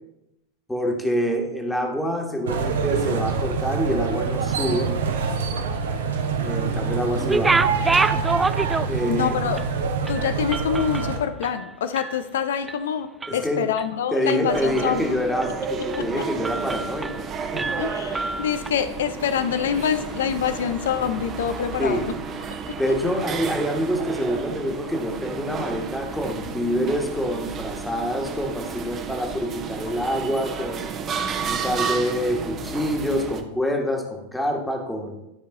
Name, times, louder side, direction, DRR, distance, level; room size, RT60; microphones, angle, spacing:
voice 1, 0.7-4.9 6.4-7.7 8.9-9.3 13.3-13.7 14.1-17.1 17.4-17.7 21.8-22.1 22.8-30.9 31.5-35.1, equal, 5° left, 2 dB, 1.6 m, -26 dB
sound 1, 2.5-11.2, right 5 dB, 60° right, 1.0 m, -25 dB
sound 2, 7.2-9.2 9.6-9.7 10.1-12.2 12.5-12.8 13.2-13.9 14.3-15.0 15.4-15.6 15.9-16.1 16.4-17.3 17.6-18.7, right 3 dB, 10° right, 0.3 m, -27 dB
voice 2, 9.1-9.7 10.1-15.2 16.0-16.1 17.8-22.2 22.7-22.9, left 8 dB, 60° left, 12 dB, 0.6 m, -26 dB
sound 3, 14.5-33.4, right 5 dB, 30° right, 0.9 m, -32 dB
12.5 x 4.7 x 3.9 m, 0.92 s
figure-of-eight pair, 90°, 0 cm